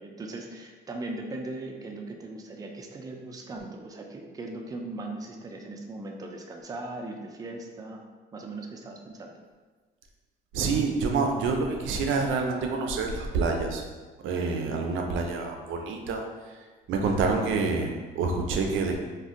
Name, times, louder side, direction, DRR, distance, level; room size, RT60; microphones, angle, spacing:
voice 1, 0.0-8.0 8.3-9.3, right 2 dB, 20° right, 2 dB, 0.3 m, -39 dB
voice 2, 10.5-13.8 14.2-19.0, right 4 dB, 80° right, 2 dB, 0.4 m, -27 dB
2.5 x 2.2 x 3.6 m, 1.4 s
cardioid pair, 90°, 20 cm